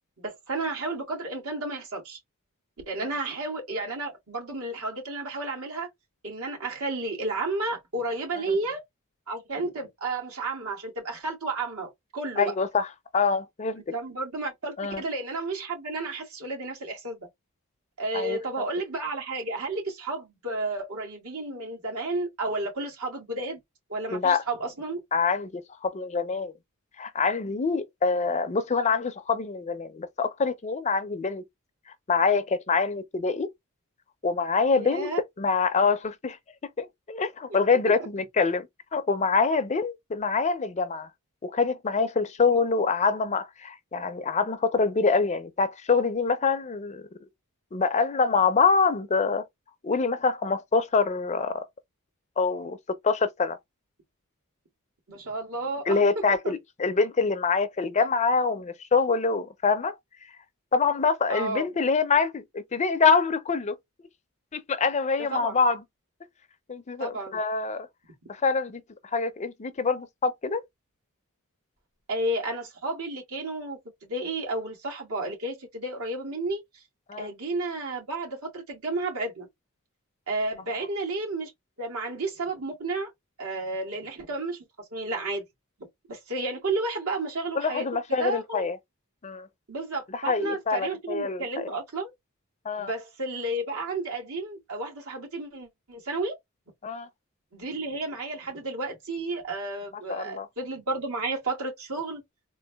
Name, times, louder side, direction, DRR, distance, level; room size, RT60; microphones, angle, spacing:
voice 1, 0.2-2.2 2.9-5.9 6.2-8.8 9.3-12.5 13.9-17.3 18.0-23.6 23.9-25.0 34.8-35.2 55.1-56.5 61.3-61.7 65.2-65.6 67.0-67.4 72.1-76.6 77.2-79.5 80.3-81.5 81.8-83.1 83.4-84.6 84.9-85.5 86.1-88.7 89.7-92.1 92.8-96.4 97.5-102.2, right 2 dB, 80° right, 2.1 m, -32 dB
voice 2, 12.4-12.9 13.1-13.8 14.8-15.0 18.1-18.4 24.1-24.4 25.1-26.5 27.0-31.4 32.1-33.5 34.2-35.1 35.4-36.4 36.8-38.7 38.9-41.1 41.4-47.0 47.7-49.4 49.8-51.7 52.4-52.8 53.0-53.6 55.9-60.0 60.7-63.8 64.5-65.8 66.7-67.9 68.3-68.8 69.1-70.6 77.1-77.3 87.6-88.8 89.2-89.5 90.1-91.7 92.7-92.9 96.8-97.1 100.1-100.5, left 4 dB, 30° left, 0.5 m, -25 dB
3.8 x 2.5 x 3.4 m
head